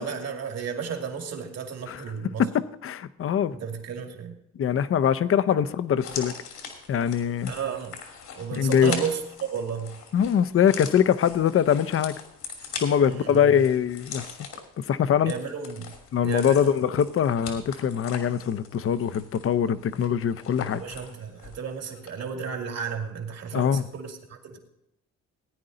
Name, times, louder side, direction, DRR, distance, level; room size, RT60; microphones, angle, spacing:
voice 1, 0.0-2.4 3.6-4.3 7.5-7.9 8.4-10.0 13.0-13.3 15.2-15.8 16.2-16.8 20.7-24.6, right 6 dB, 60° right, 4 dB, 2.2 m, -33 dB
voice 2, 2.4-3.6 4.6-6.3 6.9-7.5 8.6-9.0 10.1-12.2 12.8-14.2 14.8-15.3 16.1-20.8 23.5-23.8, left 8 dB, 45° left, 15 dB, 0.6 m, -23 dB
sound 1, 6.0-21.7 21.9-22.1, left 6 dB, 80° left, 2.9 m, -41 dB
17.0 x 9.6 x 3.9 m, 0.82 s
cardioid pair, 90°, 30 cm